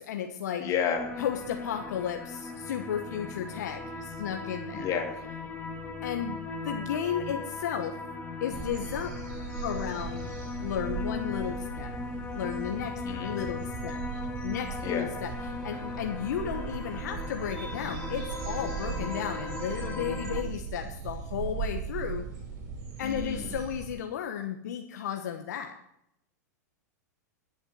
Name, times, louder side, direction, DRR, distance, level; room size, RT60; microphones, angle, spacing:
voice 1, 0.1-0.7 1.2-4.9 6.0-6.4 6.6-8.0 8.4-9.1 9.6-10.3 10.6-11.9 12.3-14.0 14.4-15.3 15.6-22.3 23.0-25.7, left 9 dB, 70° left, 4 dB, 1.2 m, -34 dB
voice 2, 0.6-1.1 4.7-5.2 13.0-13.4 14.8-15.1 23.0-23.6, left 7 dB, 35° left, 4 dB, 2.3 m, -31 dB
sound 1, 1.0-20.4, left 3 dB, 20° left, 1.6 m, -38 dB
sound 2, 8.5-23.9, right 6 dB, 55° right, 3.9 m, -38 dB
11.5 x 7.3 x 7.6 m, 0.77 s
hypercardioid pair, 105°, 10 cm